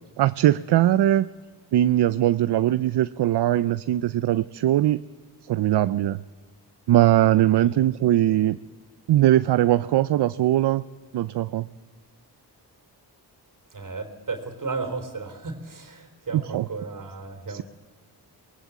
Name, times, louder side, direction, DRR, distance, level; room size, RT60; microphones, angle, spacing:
voice 1, 0.2-1.3 1.7-5.0 5.5-6.2 6.9-8.6 9.1-10.8 11.1-11.7 16.3-16.7 17.5-17.6, right 13 dB, 75° right, 15 dB, 0.6 m, -20 dB
voice 2, 13.7-17.6, right 4 dB, 50° right, 8 dB, 3.7 m, -34 dB
23.5 x 19.0 x 8.2 m, 1.4 s
cardioid pair, 80°, 41 cm